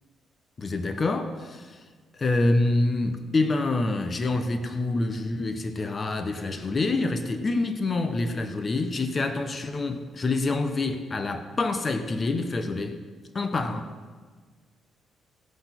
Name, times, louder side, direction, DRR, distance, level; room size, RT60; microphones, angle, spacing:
voice 1, 0.6-1.8 2.1-13.0 13.3-13.9, left 2 dB, 35° left, 8 dB, 0.9 m, -26 dB
17.0 x 5.9 x 5.9 m, 1.5 s
cardioid pair, 90°, 0 cm